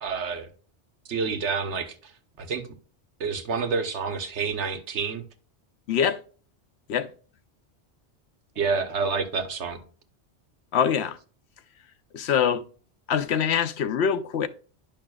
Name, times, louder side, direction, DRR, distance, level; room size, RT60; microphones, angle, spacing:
voice 1, 0.0-0.5 1.1-2.1 2.4-2.7 3.2-5.2 8.6-9.8, right 5 dB, 80° right, 1.3 m, -28 dB
voice 2, 5.9-6.2 6.9-7.1 10.7-11.2 12.1-12.6 13.1-14.5, left 8 dB, 75° left, 0.9 m, -24 dB
10.5 x 5.6 x 2.3 m
omnidirectional pair, 1.1 m